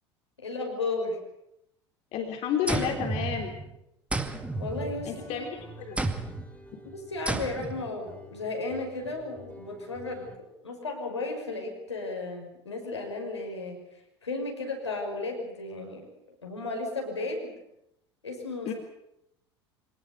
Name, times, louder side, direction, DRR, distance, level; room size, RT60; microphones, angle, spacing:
voice 1, 0.4-1.2 4.6-5.4 6.9-10.3 10.6-13.8 14.2-16.1 16.4-17.5 18.2-18.7, left 3 dB, 80° left, 1 dB, 6.1 m, -34 dB
voice 2, 2.1-3.6 5.1-5.5 5.8-6.0 6.7-6.8 18.7-18.8, left 8 dB, 50° left, 3 dB, 3.5 m, -31 dB
sound 1, 2.7-3.7 4.1-5.4 6.0-6.5 7.3-7.9, right 2 dB, 10° right, 2.3 m, -32 dB
sound 2, 4.3-10.4, equal, 10° left, 4.9 m, -49 dB
24.5 x 19.0 x 8.2 m, 0.83 s
figure-of-eight pair, 70°, 14 cm